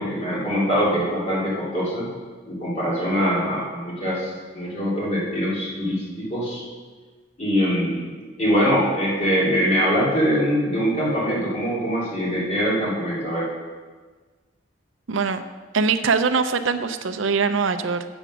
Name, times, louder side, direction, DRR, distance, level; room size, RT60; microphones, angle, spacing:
voice 1, 0.0-2.1 2.5-6.6 7.4-8.1 8.4-13.5, equal, 35° left, -7 dB, 2.9 m, -23 dB
voice 2, 15.1-15.4 15.7-18.1, right 5 dB, 85° right, 9 dB, 0.6 m, -22 dB
8.1 x 6.9 x 6.1 m, 1.4 s
head